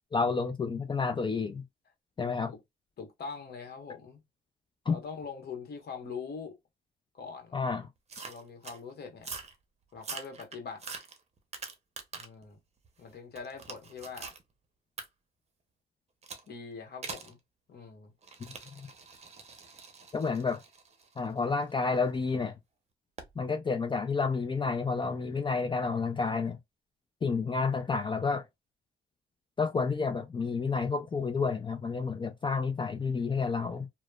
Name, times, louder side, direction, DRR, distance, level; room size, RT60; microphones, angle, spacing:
voice 1, 0.1-1.6 2.2-2.5 4.9-5.0 7.5-7.9 18.8-18.9 20.1-20.6 21.2-22.5 23.4-26.6 27.2-28.4 29.6-33.9, left 4 dB, 25° left, 0.4 m, -30 dB
voice 2, 3.0-4.2 4.9-6.6 7.1-7.6 8.3-9.3 9.9-10.8 12.2-12.6 13.0-14.3 16.5-17.4 17.7-18.1, left 5 dB, 55° left, 1.1 m, -43 dB
sound 1, 8.1-8.8 9.2-9.6 10.0-12.4 12.8-14.4 15.0-15.1 16.2-16.5 17.0-17.3 18.2-22.2 23.2-23.4, right 4 dB, 35° right, 0.7 m, -44 dB
3.0 x 2.0 x 2.2 m
cardioid pair, 90°, 20 cm